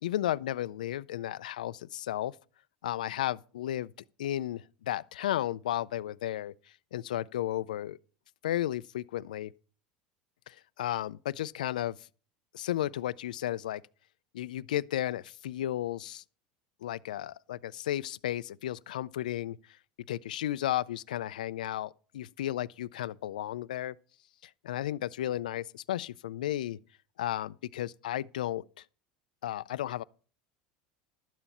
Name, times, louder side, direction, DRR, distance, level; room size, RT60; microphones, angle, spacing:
voice 1, 0.0-2.4 2.8-3.9 4.2-6.5 6.9-8.0 8.4-9.5 10.5-12.1 12.5-13.8 14.3-16.2 16.8-19.6 20.1-24.0 24.4-26.8 27.2-28.8 29.4-30.0, left 13 dB, 85° left, 0.4 m, -33 dB
12.5 x 9.0 x 4.2 m
hypercardioid pair, 90°, 4 cm